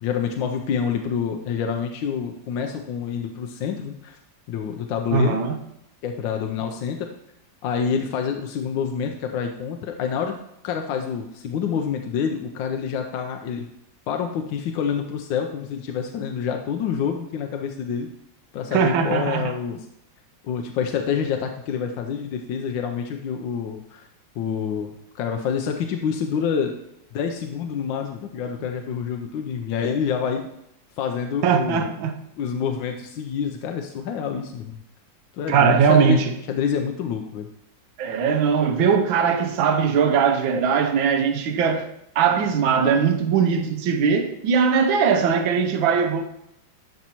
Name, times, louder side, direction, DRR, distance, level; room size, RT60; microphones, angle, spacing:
voice 1, 0.0-4.2 4.5-5.4 6.0-7.1 7.6-10.4 10.6-13.7 14.1-18.1 18.5-19.8 20.4-24.1 24.4-26.8 27.1-30.4 31.0-31.9 32.4-34.8 35.3-37.5, left 7 dB, 80° left, 1.4 m, -27 dB
voice 2, 5.1-5.6 18.7-19.5 31.4-32.1 35.5-36.3 38.0-41.9 42.1-46.2, right 6 dB, 85° right, 1.6 m, -20 dB
12.0 x 5.5 x 3.0 m
omnidirectional pair, 2.1 m